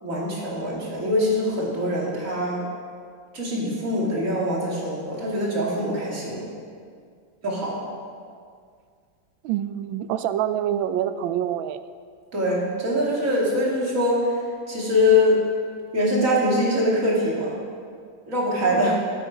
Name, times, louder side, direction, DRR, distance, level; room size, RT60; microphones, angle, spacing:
voice 1, 0.0-2.6 3.3-6.5 7.4-7.8 12.3-14.3 14.7-15.4 15.9-17.6 18.3-18.9, left 1 dB, 40° right, -4 dB, 2.8 m, -23 dB
voice 2, 9.4-11.8 18.7-19.0, right 10 dB, 85° right, 12 dB, 1.4 m, -26 dB
14.5 x 8.4 x 5.0 m, 2.1 s
omnidirectional pair, 2.1 m